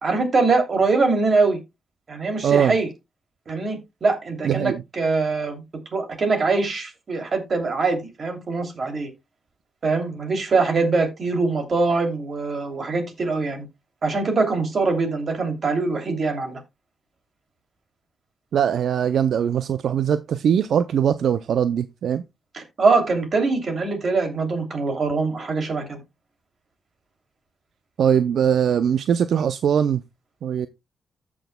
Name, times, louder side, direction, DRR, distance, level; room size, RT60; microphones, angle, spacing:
voice 1, 0.0-1.6 2.1-2.9 3.5-5.6 5.9-9.1 9.8-13.7 14.0-16.6 22.5-26.0, right 3 dB, 50° right, 2.8 m, -23 dB
voice 2, 2.4-2.8 4.4-4.8 18.5-22.2 28.0-30.0 30.4-30.7, right 8 dB, 75° right, 0.4 m, -21 dB
14.5 x 6.2 x 2.2 m
cardioid pair, 100°, 0 cm